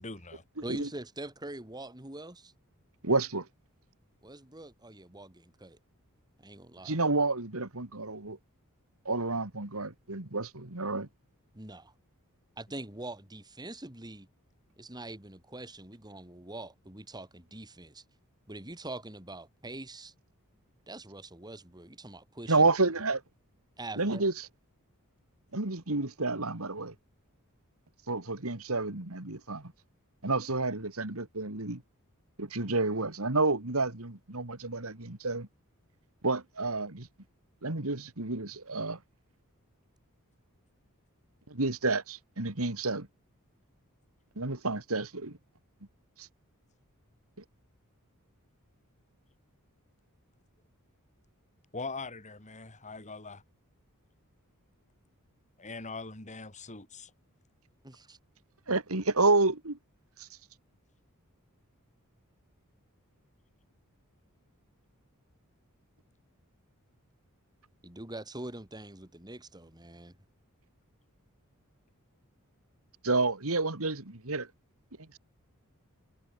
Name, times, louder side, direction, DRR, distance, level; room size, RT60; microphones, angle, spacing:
voice 1, 0.0-0.4 51.7-53.4 55.6-57.1, left 3 dB, 35° left, 3.9 m, -42 dB
voice 2, 0.6-2.5 4.2-5.8 6.4-7.0 11.5-11.9 12.6-14.3 14.8-18.0 18.5-20.1 20.9-22.7 23.8-24.2 57.8-58.2 67.8-70.2, right 2 dB, 20° right, 3.4 m, -44 dB
voice 3, 3.0-3.5 6.8-8.4 9.0-11.1 22.5-23.2 24.0-24.3 25.5-26.9 28.1-29.7 30.2-31.8 32.4-35.5 36.2-37.1 37.6-39.0 41.5-43.1 44.4-45.4 46.2-46.3 58.7-59.8 60.2-60.3 73.0-74.5 75.0-75.2, right 3 dB, 65° right, 2.6 m, -30 dB
head